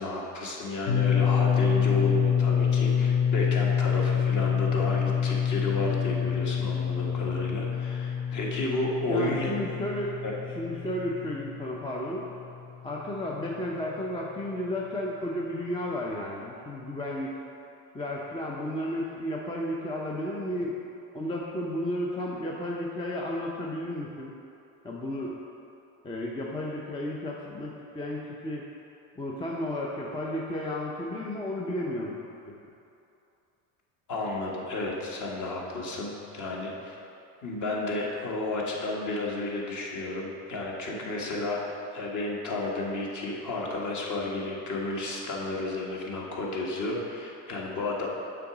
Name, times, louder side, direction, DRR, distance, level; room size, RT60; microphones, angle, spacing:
voice 1, 0.0-9.5 10.2-10.3 34.1-37.0 37.4-48.1, left 2 dB, 40° left, -3 dB, 1.6 m, -32 dB
sound 1, 0.9-12.6, left 7 dB, 65° left, 1.0 m, -27 dB
voice 2, 9.1-10.2 10.5-12.3 12.8-17.3 17.9-20.8 21.1-24.3 24.8-25.4 26.0-28.7 29.2-32.5, left 1 dB, 10° left, -3 dB, 0.6 m, -33 dB
6.9 x 3.8 x 6.0 m, 2.7 s
supercardioid pair, 95°, 45 cm